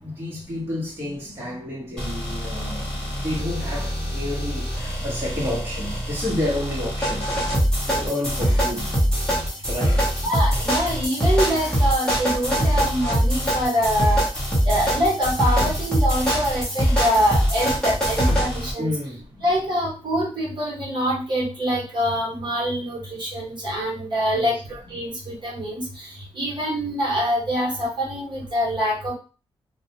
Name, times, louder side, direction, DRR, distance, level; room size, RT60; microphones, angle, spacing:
voice 1, 0.0-7.3 7.8-8.9 9.7-10.1 18.8-19.3 24.3-24.6, left 1 dB, 25° right, 1.0 m, -30 dB
sound 1, 2.0-18.7, equal, 10° left, 0.9 m, -23 dB
voice 2, 10.2-14.2 14.6-18.9 19.4-25.8 26.4-29.1, equal, 50° right, 1.0 m, -24 dB
sound 2, 15.2-16.1 17.5-18.6, left 3 dB, 70° left, 0.6 m, -37 dB
2.3 x 2.2 x 2.8 m
wide cardioid pair, 180°, 10 cm